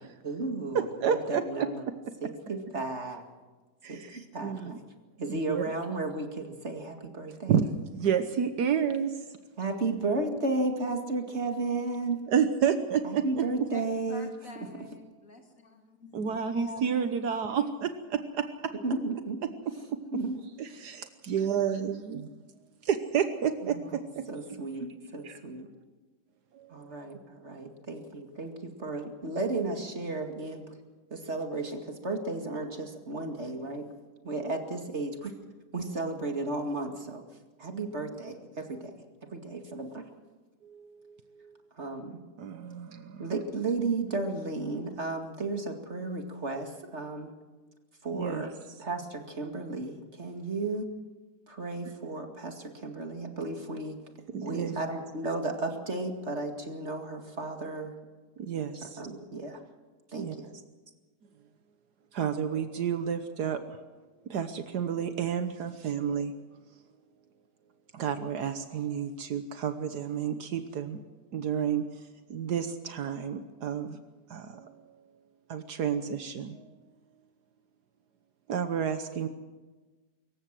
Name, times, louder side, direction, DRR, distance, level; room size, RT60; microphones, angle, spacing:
voice 1, 0.2-1.8 2.2-3.3 3.9-4.8 5.2-7.6 9.6-12.3 13.0-14.9 18.7-19.4 19.7-20.4 20.7-20.8 23.6-25.7 26.7-30.8 31.1-33.9 34.2-35.4 35.7-38.9 39.2-40.1 41.7-42.2 43.2-47.3 48.0-50.9 51.5-54.0 54.4-58.0 58.7-59.6 60.1-60.6, right 3 dB, 40° right, 5 dB, 2.4 m, -34 dB
voice 2, 1.0-1.4 3.8-3.9 4.4-4.7 5.3-5.6 7.5-7.6 7.9-9.2 12.3-13.2 16.1-18.7 20.8-22.3 22.8-24.3 26.5-26.9 40.6-41.6 42.4-43.2 48.1-48.4 54.3-54.8 58.4-59.0 60.1-60.3 62.1-63.8 64.3-66.4 67.9-71.0 71.3-74.0 74.3-75.0 75.5-76.7 78.5-79.3, right 8 dB, 75° right, 9 dB, 1.6 m, -30 dB
voice 3, 14.1-17.0, left 3 dB, 55° left, 3 dB, 2.9 m, -45 dB
24.5 x 15.0 x 7.6 m, 1.3 s
omnidirectional pair, 1.8 m